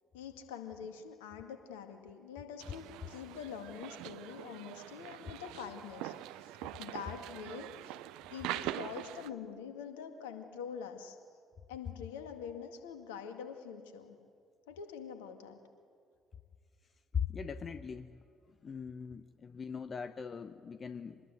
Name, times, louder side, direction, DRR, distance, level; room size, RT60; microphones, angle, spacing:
voice 1, 0.1-8.0 8.3-11.2 11.7-14.2 14.7-15.6, left 7 dB, 75° left, 6 dB, 2.1 m, -45 dB
sound 1, 2.6-9.3, right 14 dB, 65° right, 0.6 m, -43 dB
voice 2, 17.1-18.1 18.6-21.2, left 7 dB, 40° left, 11 dB, 0.9 m, -39 dB
26.0 x 20.5 x 7.9 m, 2.3 s
figure-of-eight pair, 45°, 0 cm